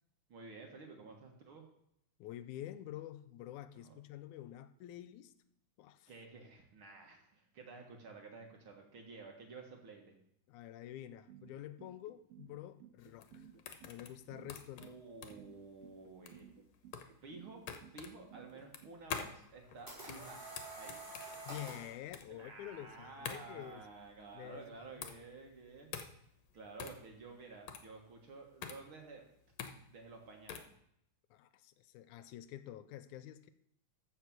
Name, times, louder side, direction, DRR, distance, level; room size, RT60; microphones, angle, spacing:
voice 1, 0.3-1.7 3.7-4.0 6.1-10.1 14.8-16.5 17.2-20.5 20.8-21.0 22.3-26.1 26.5-29.2 29.9-30.7, right 4 dB, 50° right, 2 dB, 2.0 m, -52 dB
voice 2, 2.2-5.3 5.8-6.1 10.5-13.5 13.9-15.0 21.5-23.9 24.3-24.6 24.9-25.1 31.3-33.5, left 12 dB, 90° left, 12 dB, 2.1 m, -48 dB
sound 1, 11.3-18.9, right 9 dB, 70° right, 1.6 m, -57 dB
sound 2, 13.0-30.8, left 7 dB, 70° left, 2.0 m, -48 dB
sound 3, 19.4-22.0, right 2 dB, 5° right, 5.2 m, -48 dB
14.0 x 5.1 x 5.9 m, 0.74 s
omnidirectional pair, 3.5 m